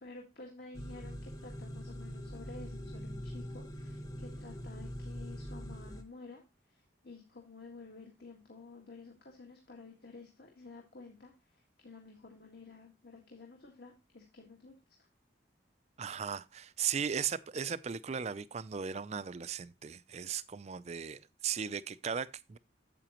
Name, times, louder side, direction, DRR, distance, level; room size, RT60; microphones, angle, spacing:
voice 1, 0.0-6.4 6.7-15.1, left 3 dB, 55° left, 1.6 m, -52 dB
sound 1, 0.7-6.0, equal, 20° left, 1.0 m, -43 dB
voice 2, 16.0-22.6, right 7 dB, 35° right, 0.4 m, -37 dB
8.9 x 7.7 x 3.0 m
head